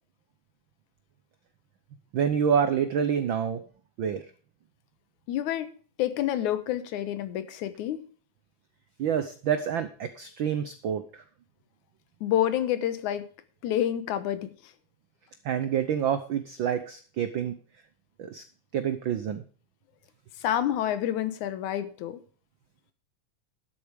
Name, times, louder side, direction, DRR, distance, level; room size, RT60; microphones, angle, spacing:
voice 1, 2.1-3.6 4.0-4.2 9.0-11.2 15.4-17.6 18.2-18.4 18.7-19.4, right 8 dB, 85° right, 10 dB, 1.0 m, -27 dB
voice 2, 5.3-5.7 6.0-8.0 12.2-13.3 13.6-14.5 20.4-22.2, left 11 dB, 85° left, 13 dB, 2.5 m, -28 dB
12.0 x 8.2 x 5.1 m, 0.42 s
omnidirectional pair, 3.4 m